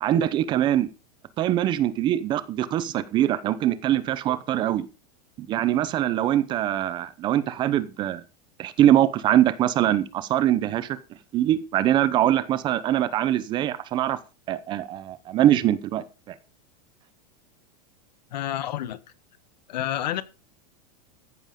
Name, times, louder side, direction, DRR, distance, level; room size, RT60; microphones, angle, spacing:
voice 1, 0.0-0.9 1.4-4.9 5.4-8.2 8.6-11.0 11.3-14.2 14.5-16.4, right 12 dB, 20° right, 0.8 m, -23 dB
voice 2, 18.3-19.0 19.7-20.2, left 12 dB, 80° left, 1.5 m, -29 dB
14.5 x 7.9 x 5.2 m
supercardioid pair, 175°, 21 cm